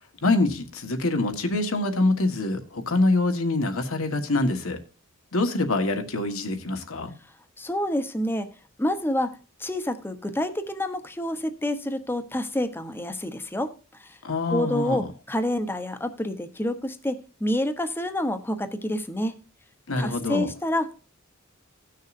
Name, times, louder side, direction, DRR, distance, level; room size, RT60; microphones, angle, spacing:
voice 1, 0.2-4.8 5.3-7.1 14.2-15.1 19.9-20.5, left 2 dB, 80° left, 1.5 m, -25 dB
voice 2, 7.6-8.5 8.8-9.3 9.6-13.7 14.5-19.3 20.0-21.0, left 1 dB, 10° left, 0.9 m, -28 dB
17.0 x 6.5 x 2.6 m
head